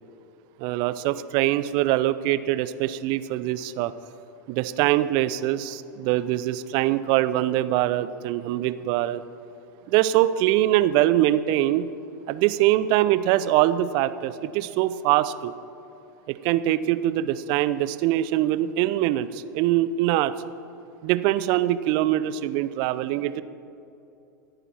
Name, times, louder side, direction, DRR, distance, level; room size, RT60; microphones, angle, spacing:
voice 1, 0.6-3.9 4.5-9.2 9.9-11.9 12.3-15.5 16.3-20.3 21.0-23.4, right 14 dB, 45° right, 14 dB, 0.6 m, -23 dB
25.0 x 9.0 x 4.4 m, 2.8 s
figure-of-eight pair, 90°, 11 cm